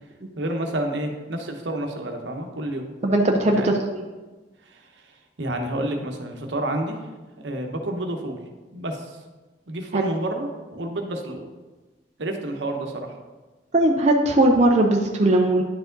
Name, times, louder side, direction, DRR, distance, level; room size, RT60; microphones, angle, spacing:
voice 1, 0.3-2.9 3.5-3.7 4.7-4.9 5.4-7.1 7.4-8.4 8.7-9.2 9.7-11.4 12.2-13.1, right 1 dB, 75° right, 3 dB, 1.0 m, -29 dB
voice 2, 3.0-4.0 9.9-10.0 13.7-15.6, right 1 dB, 40° right, 1 dB, 0.6 m, -19 dB
10.0 x 4.8 x 3.9 m, 1.2 s
head